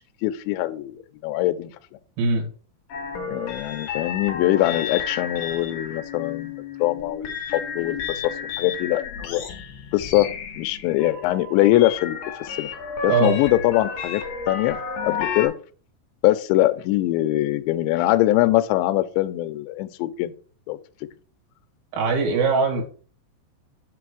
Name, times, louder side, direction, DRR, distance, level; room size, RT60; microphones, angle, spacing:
voice 1, 0.0-1.7 3.3-8.0 8.6-9.4 9.9-10.3 10.6-12.7 13.0-14.8 15.0-15.5 16.2-20.3 20.7-20.8, left 16 dB, 80° left, 10 dB, 2.8 m, -22 dB
sound 1, 2.9-15.5, left 6 dB, 65° left, 2.4 m, -32 dB
voice 2, 21.9-22.8, right 4 dB, 80° right, 0 dB, 4.3 m, -21 dB
7.7 x 3.4 x 6.2 m, 0.41 s
omnidirectional pair, 5.4 m